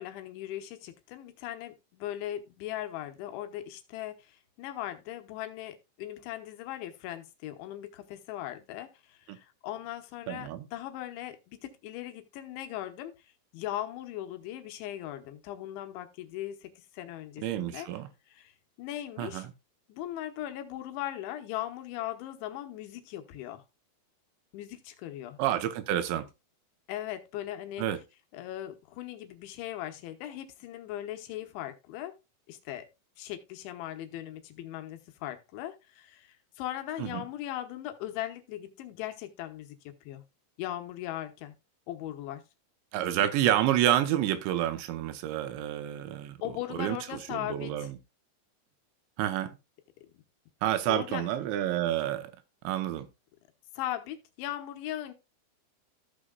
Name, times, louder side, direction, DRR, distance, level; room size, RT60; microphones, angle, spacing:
voice 1, 0.0-13.1 13.5-17.9 18.3-18.5 18.8-19.5 19.9-23.6 24.5-25.4 26.9-27.9 28.3-32.1 32.5-32.9 33.2-40.2 40.6-41.6 41.9-42.4 46.4-47.9 50.9-51.3 53.7-55.1, left 13 dB, 80° left, 3.4 m, -39 dB
voice 2, 10.3-10.6 17.4-18.1 19.2-19.4 25.4-26.3 27.8-28.0 37.0-37.2 42.9-46.4 46.7-47.0 47.3-47.9 49.2-49.5 50.6-52.3 52.6-53.1, right 12 dB, 80° right, 3.1 m, -29 dB
15.0 x 6.3 x 2.3 m
omnidirectional pair, 5.3 m